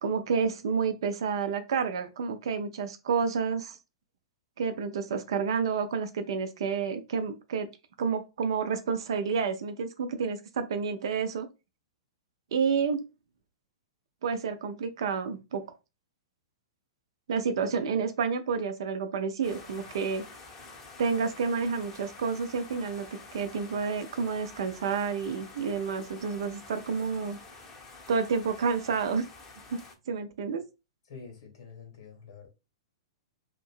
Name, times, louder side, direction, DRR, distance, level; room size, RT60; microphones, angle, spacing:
voice 1, 0.0-3.8 4.6-7.7 8.0-11.5 12.5-13.0 14.2-15.7 17.3-20.2 21.0-23.1 23.3-27.4 28.1-29.3 29.7-29.8 30.1-30.7, right 5 dB, 60° right, 0.5 m, -29 dB
sound 1, 19.4-30.0, left 3 dB, 25° left, 0.8 m, -49 dB
voice 2, 31.1-32.5, left 5 dB, 60° left, 1.6 m, -47 dB
2.9 x 2.6 x 2.4 m
figure-of-eight pair, 110°, 3 cm